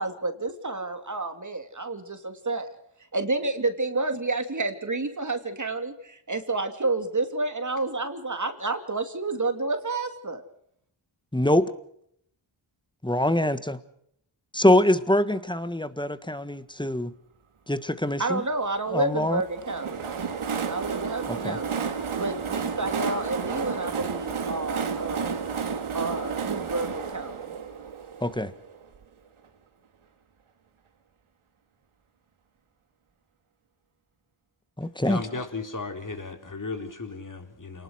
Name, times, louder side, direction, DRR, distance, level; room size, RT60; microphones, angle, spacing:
voice 1, 0.0-2.7 3.1-10.4 18.2-20.0 20.7-21.8 22.2-25.4 25.9-27.5, right 3 dB, 35° right, 7 dB, 2.8 m, -30 dB
voice 2, 11.3-11.6 13.0-13.8 14.5-17.1 17.7-18.4 18.9-19.4 21.3-21.6 28.2-28.5 34.8-35.2, left 1 dB, 10° left, 12 dB, 1.6 m, -24 dB
Train, 19.4-29.0, right 6 dB, 85° right, 2.4 m, -31 dB
voice 3, 35.0-37.8, left 3 dB, 40° left, 5 dB, 4.1 m, -35 dB
28.0 x 19.0 x 6.4 m, 0.69 s
cardioid pair, 65°, 49 cm